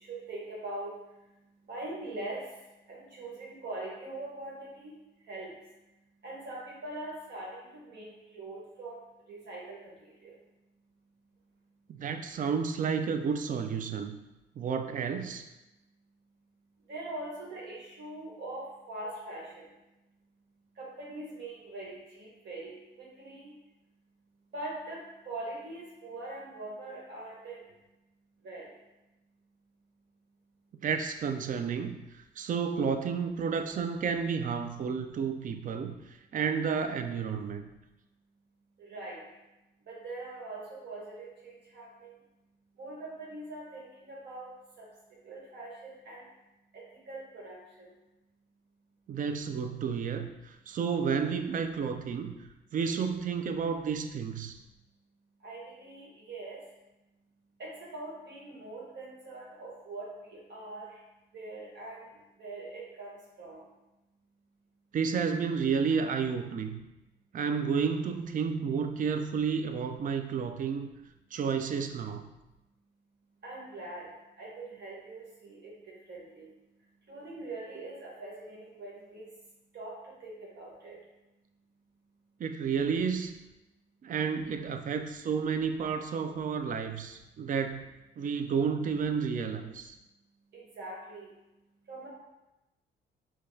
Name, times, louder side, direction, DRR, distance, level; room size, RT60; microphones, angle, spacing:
voice 1, 0.1-0.9 1.7-2.4 2.9-4.9 5.3-5.5 6.2-7.5 7.8-9.0 9.3-9.9 10.2-10.3 16.9-19.4 20.8-22.7 23.0-23.5 24.5-27.6 28.4-28.7 38.9-39.2 39.9-42.1 42.8-44.5 45.2-46.2 46.7-47.9 55.4-56.6 57.6-60.1 60.5-60.9 61.3-62.0 62.4-63.1 63.4-63.6 73.4-74.1 74.4-76.5 77.1-79.3 79.7-79.9 80.2-81.0 90.5-91.3 91.9-92.1, right 2 dB, 60° right, -4 dB, 1.2 m, -42 dB
voice 2, 11.9-14.2 14.6-15.5 30.8-37.7 49.1-52.4 52.7-54.6 64.9-66.8 67.3-70.9 71.3-72.3 82.4-83.3 84.0-90.0, right 6 dB, 45° right, 7 dB, 0.4 m, -31 dB
4.6 x 2.3 x 2.7 m, 0.98 s
cardioid pair, 90°, 20 cm